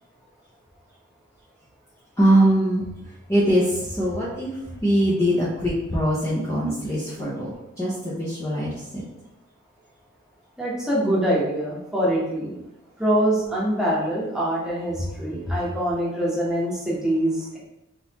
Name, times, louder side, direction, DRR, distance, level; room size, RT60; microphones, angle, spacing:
voice 1, 2.2-9.0 15.0-15.1 15.5-15.6, right 1 dB, 15° left, -8 dB, 0.7 m, -23 dB
voice 2, 10.6-12.6 13.0-17.6, right 1 dB, 5° right, -6 dB, 1.1 m, -24 dB
4.0 x 3.9 x 2.9 m, 0.89 s
head